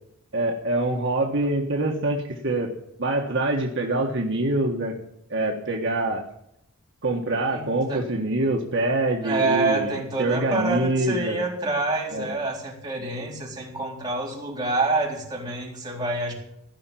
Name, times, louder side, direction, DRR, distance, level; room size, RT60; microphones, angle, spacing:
voice 1, 0.3-2.7 3.0-4.9 5.3-6.2 7.0-9.9 10.2-11.4 12.1-12.3, right 2 dB, 60° right, 0 dB, 1.5 m, -25 dB
voice 2, 7.5-8.1 9.2-16.3, right 2 dB, 20° right, -4 dB, 3.8 m, -27 dB
16.0 x 5.9 x 9.1 m, 0.77 s
head